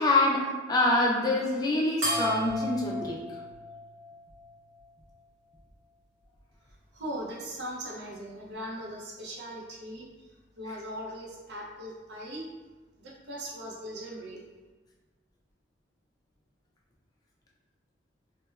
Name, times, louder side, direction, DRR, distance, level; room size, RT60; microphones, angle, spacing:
voice 1, 0.0-3.4, left 2 dB, 20° left, -3 dB, 0.3 m, -26 dB
sound 1, 2.0-4.8, equal, 80° right, 0.9 m, -34 dB
voice 2, 6.9-10.3 10.6-12.5 13.0-14.4, equal, 60° right, -2 dB, 0.5 m, -39 dB
3.1 x 2.1 x 2.2 m, 1.2 s
head